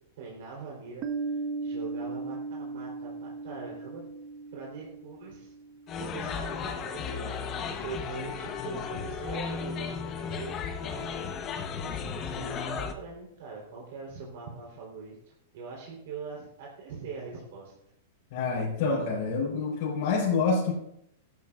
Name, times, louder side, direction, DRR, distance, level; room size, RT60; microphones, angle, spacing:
voice 1, 0.2-4.0 4.5-5.5 6.0-10.5 10.8-17.7, right 4 dB, 60° right, -3 dB, 3.8 m, -42 dB
Piano, 1.0-6.4, right 4 dB, 30° right, 1.0 m, -37 dB
sound 1, 5.9-12.9, left 6 dB, 25° left, 0.9 m, -35 dB
voice 2, 18.3-20.7, left 4 dB, 55° left, -6 dB, 4.2 m, -27 dB
16.0 x 12.5 x 2.5 m, 0.78 s
supercardioid pair, 160°, 0 cm